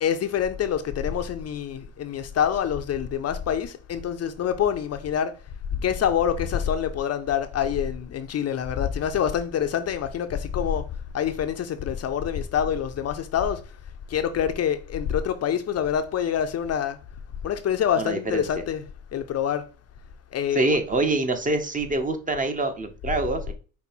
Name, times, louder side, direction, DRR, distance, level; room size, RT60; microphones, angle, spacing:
voice 1, 0.0-5.3 5.8-10.8 11.1-13.6 14.1-17.0 17.4-18.8 19.1-19.6 20.3-20.8, left 8 dB, 50° left, 0.6 m, -26 dB
voice 2, 18.0-18.4 20.5-23.5, right 2 dB, 25° right, 0.9 m, -25 dB
5.4 x 2.3 x 4.4 m
cardioid pair, 95°, 32 cm